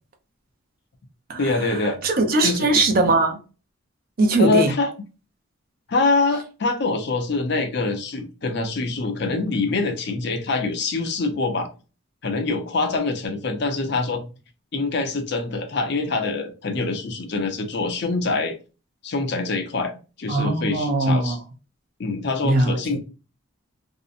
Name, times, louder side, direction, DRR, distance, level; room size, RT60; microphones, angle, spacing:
voice 1, 1.4-2.0 2.4-2.7 4.4-4.9 5.9-11.7 12.2-14.2 14.7-18.5 19.0-19.9 20.2-21.4 22.0-23.0, left 3 dB, 50° left, 0.5 m, -24 dB
voice 2, 2.0-3.4 4.2-4.7 20.3-21.4 22.4-22.8, right 2 dB, 45° right, 0.4 m, -20 dB
2.6 x 2.0 x 2.5 m
head